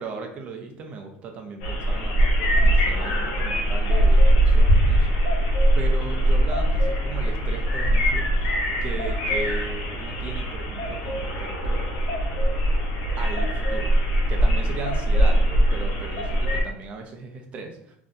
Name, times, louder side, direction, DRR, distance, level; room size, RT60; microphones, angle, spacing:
voice 1, 0.0-5.1 5.8-8.3 8.8-11.8 13.2-13.9 14.3-17.9, right 4 dB, 30° right, 4 dB, 0.5 m, -37 dB
sound 1, 1.6-16.6, right 1 dB, 90° left, 0.8 m, -21 dB
2.6 x 2.2 x 3.6 m, 0.68 s
cardioid pair, 175°, 4 cm